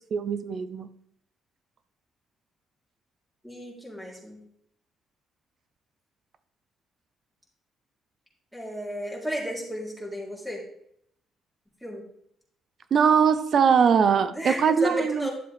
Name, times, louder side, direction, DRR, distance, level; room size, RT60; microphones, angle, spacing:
voice 1, 0.1-0.9 12.9-15.3, right 6 dB, 55° right, 12 dB, 0.7 m, -21 dB
voice 2, 3.4-4.4 8.5-10.6 11.8-12.0 14.3-15.3, equal, 5° right, -4 dB, 4.0 m, -33 dB
11.5 x 7.2 x 3.6 m, 0.71 s
cardioid pair, 90°, 0 cm